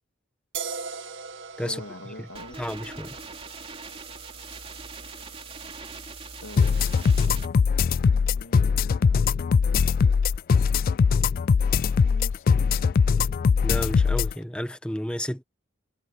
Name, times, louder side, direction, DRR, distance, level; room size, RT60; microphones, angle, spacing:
sound 1, 0.5-7.8, right 5 dB, 65° right, 2.0 m, -42 dB
voice 1, 1.6-2.6 6.4-6.8 7.3-7.5 7.8-9.4 11.8-12.8, left 2 dB, 85° left, 2.3 m, -44 dB
sound 2, 2.3-7.5, right 4 dB, 30° right, 2.9 m, -41 dB
voice 2, 2.6-3.1 13.6-15.4, equal, 5° left, 1.6 m, -31 dB
sound 3, 6.6-14.3, left 5 dB, 45° left, 0.3 m, -21 dB
head